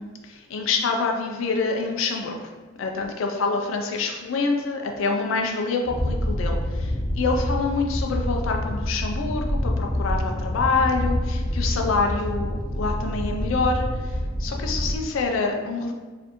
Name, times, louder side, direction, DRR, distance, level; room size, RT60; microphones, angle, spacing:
voice 1, 0.0-2.5 2.8-15.9, left 4 dB, 80° left, 2 dB, 0.4 m, -26 dB
sound 1, 5.9-15.0, left 1 dB, 20° left, 0.6 m, -27 dB
4.2 x 2.5 x 2.9 m, 1.3 s
head